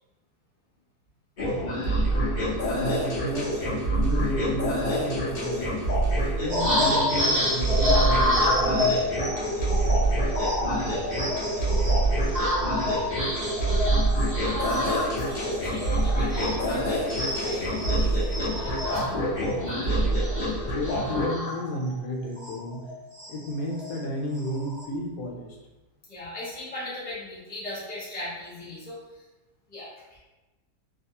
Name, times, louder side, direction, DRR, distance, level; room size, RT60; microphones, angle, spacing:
sound 1, 1.4-21.3, right 1 dB, 50° left, 0.5 m, -26 dB
voice 1, 2.7-5.7 6.4-8.9 20.7-22.8 23.3-25.6, equal, 80° left, -1 dB, 1.1 m, -32 dB
sound 2, 6.5-16.8 17.1-22.0 22.4-22.6 22.8-24.0 24.4-24.8, left 1 dB, 35° right, 0.6 m, -29 dB
voice 2, 14.4-19.2 26.1-29.3 29.7-30.2, left 1 dB, 10° left, -9 dB, 0.7 m, -39 dB
2.7 x 2.3 x 2.7 m, 1.1 s
omnidirectional pair, 1.7 m